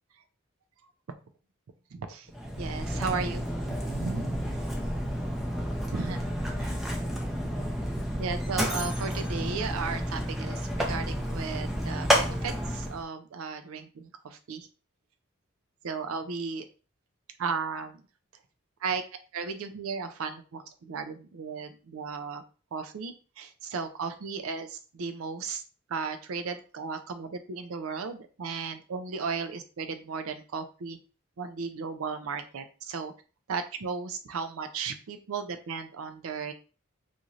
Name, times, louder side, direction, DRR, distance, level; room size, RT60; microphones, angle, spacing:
voice 1, 1.9-2.3 2.6-4.7 5.9-6.3 6.6-6.8 8.2-14.7 15.8-16.7 17.4-18.0 18.8-19.0 19.3-22.4 22.7-25.6 25.9-31.0 31.4-33.1 33.5-36.5, right 5 dB, 80° right, 8 dB, 0.4 m, -35 dB
Mechanisms, 2.3-13.0, equal, ahead, 0.3 m, -30 dB
2.6 x 2.4 x 3.0 m, 0.36 s
head